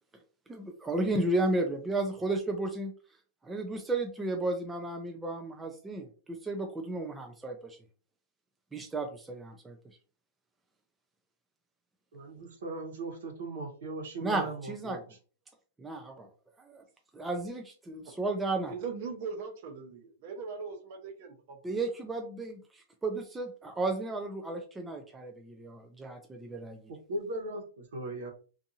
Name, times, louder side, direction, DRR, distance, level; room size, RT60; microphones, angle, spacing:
voice 1, 0.5-2.9 3.4-7.8 8.7-9.8 14.2-15.0 15.8-16.3 16.6-16.8 17.1-18.7 21.6-22.6 23.0-26.9, right 2 dB, 10° right, 3 dB, 0.3 m, -33 dB
voice 2, 12.1-15.1 26.9-28.3, right 2 dB, 80° right, 2 dB, 1.0 m, -38 dB
voice 3, 18.7-21.6, right 5 dB, 45° right, 4 dB, 0.7 m, -40 dB
2.5 x 2.5 x 2.7 m, 0.38 s
supercardioid pair, 155°, 0 cm